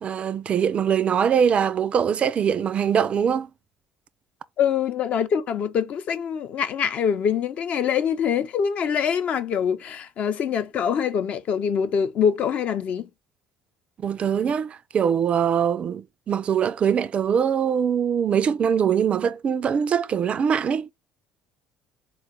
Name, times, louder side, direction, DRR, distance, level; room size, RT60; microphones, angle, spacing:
voice 1, 0.0-3.5 14.0-20.9, right 8 dB, 40° right, 0.3 m, -22 dB
voice 2, 4.6-13.1, left 7 dB, 50° left, 0.6 m, -24 dB
3.9 x 2.3 x 4.4 m
hypercardioid pair, 60°, 3 cm